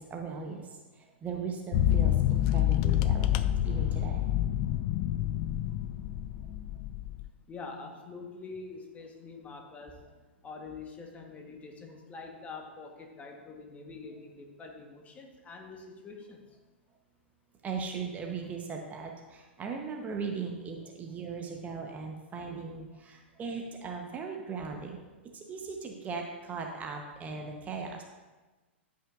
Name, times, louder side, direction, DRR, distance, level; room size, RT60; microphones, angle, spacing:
voice 1, 0.0-4.3 17.6-25.0 25.3-28.0, right 5 dB, 25° right, 2 dB, 0.9 m, -38 dB
sound 1, 1.7-7.3, left 12 dB, 40° left, 0.3 m, -28 dB
voice 2, 7.5-10.0 10.4-16.4, left 4 dB, 20° left, 2 dB, 1.2 m, -45 dB
13.5 x 5.7 x 2.5 m, 1.2 s
figure-of-eight pair, 100°, 7 cm